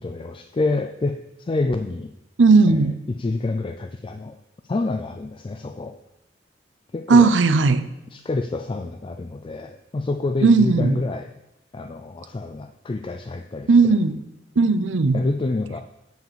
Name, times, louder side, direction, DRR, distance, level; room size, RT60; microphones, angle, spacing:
voice 1, 0.0-2.1 2.7-2.8 3.2-4.4 4.7-6.0 6.9-7.3 8.1-11.3 11.7-13.9 15.1-15.8, left 3 dB, 30° left, 8 dB, 0.4 m, -27 dB
voice 2, 2.4-2.9 7.1-7.8 10.4-10.9 13.7-14.2 14.6-15.2, right 4 dB, 80° right, 11 dB, 0.6 m, -16 dB
9.2 x 4.9 x 7.3 m, 0.91 s
head